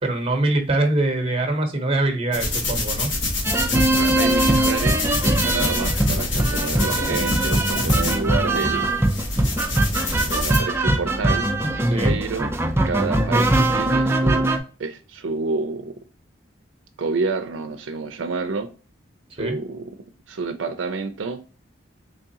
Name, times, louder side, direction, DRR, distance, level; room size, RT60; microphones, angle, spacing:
voice 1, 0.0-3.1 11.9-12.2 19.4-19.6, right 2 dB, 30° right, 0.8 m, -23 dB
sound 1, 2.3-10.6, left 2 dB, 70° left, 1.2 m, -26 dB
sound 2, 3.4-14.6, right 1 dB, 10° right, 0.4 m, -21 dB
voice 2, 4.0-8.9 10.3-11.5 12.0-12.5 12.8-14.5 14.8-15.9 17.0-18.7 19.3-20.0 20.3-21.4, right 4 dB, 75° right, 0.4 m, -29 dB
3.5 x 3.3 x 2.7 m
head